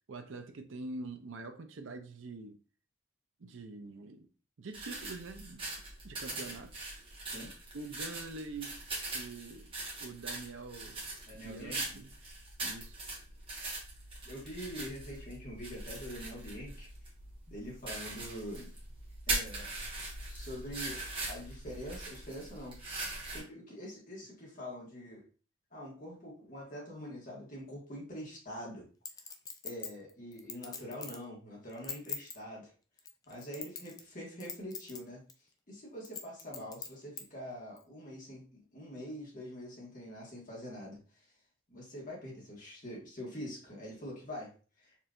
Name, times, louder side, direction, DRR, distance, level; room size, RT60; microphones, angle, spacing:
voice 1, 0.1-2.6 3.4-4.3 4.6-5.6 6.0-6.9 7.7-8.8 9.1-9.7 10.0-12.1 12.6-13.0, right 3 dB, 70° right, 0.5 m, -45 dB
sound 1, 4.7-23.4, right 2 dB, 25° right, 1.4 m, -41 dB
voice 2, 11.3-12.0 14.2-17.1 17.5-18.7 19.3-19.7 20.2-22.8 23.2-25.2 25.7-28.9 29.6-32.7 33.3-35.2 35.7-41.3 41.7-45.0, equal, 40° left, 1.7 m, -45 dB
Chink clink, 29.0-31.2 31.7-32.3 33.0-34.1 34.4-35.0 35.3-35.4 36.0-37.2 37.8-37.9, left 6 dB, 20° left, 0.4 m, -41 dB
4.4 x 3.3 x 2.4 m
head